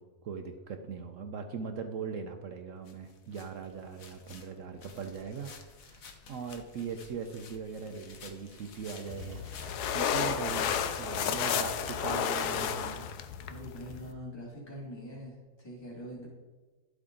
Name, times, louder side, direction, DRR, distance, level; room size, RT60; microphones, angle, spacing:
voice 1, 0.0-9.4 9.8-13.1, right 6 dB, 65° right, 6 dB, 1.0 m, -40 dB
sound 1, 2.8-12.9, left 5 dB, 60° left, 1.4 m, -54 dB
sound 2, 8.4-12.7, right 4 dB, 80° right, 1.7 m, -48 dB
sound 3, 9.1-14.1, left 8 dB, 90° left, 1.2 m, -32 dB
voice 2, 13.5-16.3, equal, 15° left, -5 dB, 2.5 m, -43 dB
12.0 x 8.1 x 3.8 m, 1.3 s
omnidirectional pair, 1.7 m